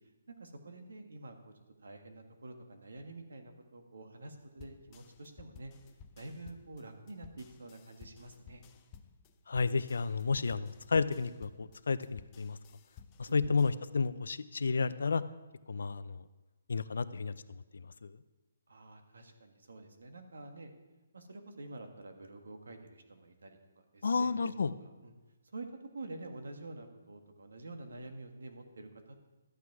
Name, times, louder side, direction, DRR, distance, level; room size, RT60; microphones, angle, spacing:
voice 1, 0.3-1.5 1.8-5.7 6.2-8.6 13.3-13.5 18.7-20.7 21.1-24.5 24.8-25.1 25.5-25.7 25.9-29.3, right 2 dB, 90° right, 5 dB, 1.7 m, -48 dB
sound 1, 4.6-13.7, left 7 dB, 20° left, 0.5 m, -56 dB
voice 2, 9.5-12.6 13.2-15.2 15.7-16.2 16.7-18.2 24.0-24.7, left 4 dB, 75° left, 14 dB, 0.6 m, -32 dB
13.0 x 8.3 x 4.8 m, 1.1 s
hypercardioid pair, 170°, 0 cm